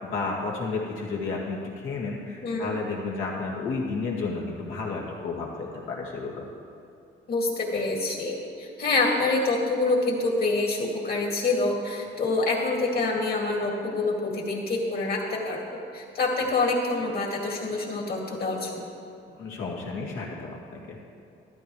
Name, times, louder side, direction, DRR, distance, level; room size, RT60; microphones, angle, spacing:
voice 1, 0.0-6.4 19.4-21.0, left 4 dB, 80° left, -2 dB, 2.1 m, -32 dB
voice 2, 2.4-2.7 7.3-18.8, left 3 dB, 50° left, 0 dB, 2.3 m, -26 dB
13.0 x 12.0 x 3.2 m, 2.5 s
cardioid pair, 90°, 20 cm